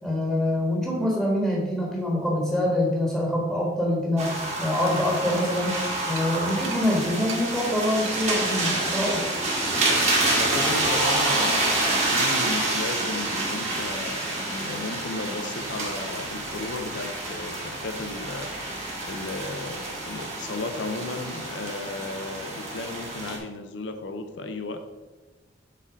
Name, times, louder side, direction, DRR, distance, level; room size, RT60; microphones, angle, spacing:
voice 1, 0.0-5.8 6.1-9.3, left 1 dB, 5° right, -3 dB, 1.4 m, -25 dB
sound 1, 4.2-23.4, right 2 dB, 35° right, 1.8 m, -28 dB
sound 2, 6.2-6.3 6.6-6.8 7.3-7.4 8.1-8.2 8.7-8.8 10.1-10.5 11.6-12.0, right 8 dB, 75° right, 0.6 m, -38 dB
voice 2, 9.7-18.5 19.0-24.8, left 3 dB, 70° left, 7 dB, 0.7 m, -35 dB
8.4 x 3.8 x 5.1 m, 1.2 s
head